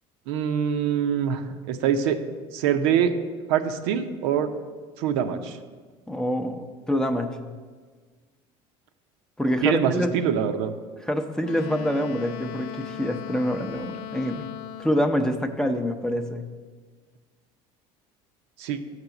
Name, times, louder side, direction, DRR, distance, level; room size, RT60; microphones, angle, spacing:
voice 1, 0.3-2.2 2.5-3.1 3.5-4.5 5.0-5.6 9.6-10.7 18.6-18.8, right 8 dB, 85° right, 7 dB, 0.6 m, -24 dB
voice 2, 6.1-7.4 9.4-10.1 11.1-14.4 14.8-16.4, equal, 5° left, 6 dB, 0.6 m, -26 dB
Wind instrument woodwind instrument, 11.4-15.4, left 10 dB, 75° left, 0.4 m, -38 dB
6.7 x 4.8 x 5.9 m, 1.5 s
supercardioid pair, 105°, 14 cm